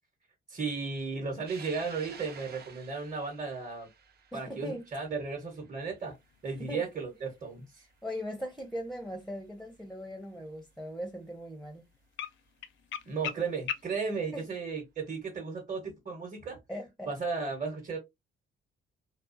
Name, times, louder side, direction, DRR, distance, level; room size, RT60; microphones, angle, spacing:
voice 1, 0.5-3.9 4.3-6.2 6.4-7.8 13.1-16.6 17.1-18.0, right 4 dB, 35° right, 1.0 m, -35 dB
sound 1, 1.5-8.1 8.6-8.7 9.9-10.0 12.2-12.3 13.7-13.9, right 6 dB, 55° right, 0.7 m, -52 dB
voice 2, 4.3-4.9 6.6-6.8 8.0-11.8 14.3-14.5 16.7-17.1, equal, ahead, 0.5 m, -39 dB
sound 2, 6.0-14.5, left 9 dB, 75° left, 0.4 m, -45 dB
2.3 x 2.3 x 2.5 m
cardioid pair, 90°, 20 cm